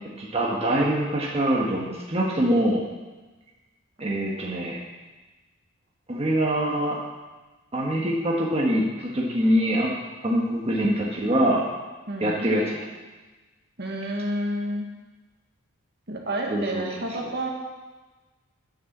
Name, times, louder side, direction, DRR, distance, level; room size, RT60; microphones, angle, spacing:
voice 1, 0.2-2.8 4.0-4.8 6.1-7.0 7.7-9.9 10.2-11.6 12.2-12.8 16.5-16.8, right 1 dB, 30° right, -4 dB, 1.4 m, -24 dB
voice 2, 12.1-12.5 13.8-14.9 16.1-17.5, right 1 dB, 50° right, 0 dB, 1.5 m, -30 dB
9.8 x 6.6 x 7.3 m, 1.2 s
head